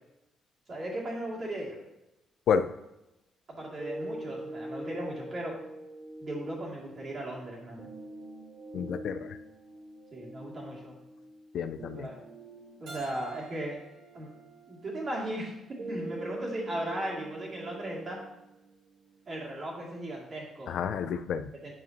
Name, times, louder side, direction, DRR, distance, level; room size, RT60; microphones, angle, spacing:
voice 1, 0.7-1.8 3.5-5.6 6.2-7.9 10.1-11.0 11.9-12.2 12.8-13.8 14.1-14.3 14.7-15.5 15.9-18.2 19.3-20.7 21.6-21.7, right 1 dB, 45° right, -3 dB, 2.5 m, -37 dB
sound 1, 3.8-19.8, right 1 dB, 65° right, 2.2 m, -44 dB
voice 2, 8.7-9.4 11.5-12.1 20.7-21.5, left 7 dB, 70° left, 11 dB, 0.4 m, -30 dB
Keyboard (musical), 12.9-15.7, right 4 dB, 90° right, 2.3 m, -49 dB
9.2 x 5.0 x 2.9 m, 0.92 s
cardioid pair, 90°, 0 cm